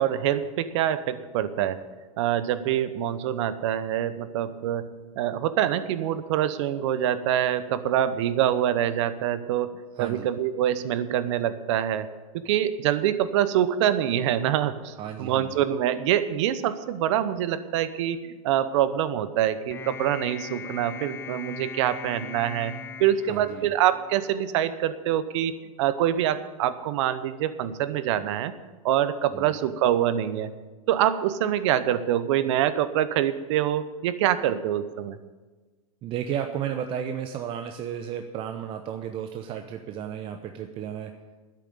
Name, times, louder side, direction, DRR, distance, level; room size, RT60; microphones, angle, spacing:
voice 1, 0.0-1.8 2.2-12.1 12.3-14.9 15.2-25.5 25.8-28.5 28.8-30.5 30.9-35.2, right 11 dB, 55° right, 13 dB, 0.9 m, -25 dB
voice 2, 9.9-10.3 15.0-15.6 23.3-23.7 29.3-29.6 36.0-41.1, right 9 dB, 30° right, 6 dB, 0.8 m, -33 dB
sound 1, 19.7-24.2, left 6 dB, 10° left, 0.7 m, -40 dB
10.5 x 8.5 x 9.5 m, 1.3 s
hypercardioid pair, 135°, 19 cm